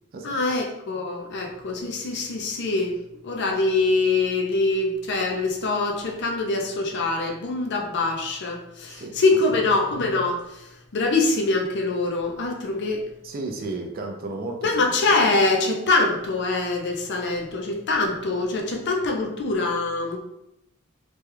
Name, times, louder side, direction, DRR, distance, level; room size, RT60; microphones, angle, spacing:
voice 1, 0.2-3.0 3.2-10.6 10.9-13.0 14.6-20.2, left 3 dB, 50° left, 1 dB, 0.5 m, -24 dB
voice 2, 8.9-9.7 13.2-15.2, right 2 dB, 40° right, 2 dB, 0.4 m, -34 dB
3.0 x 2.3 x 3.2 m, 0.86 s
head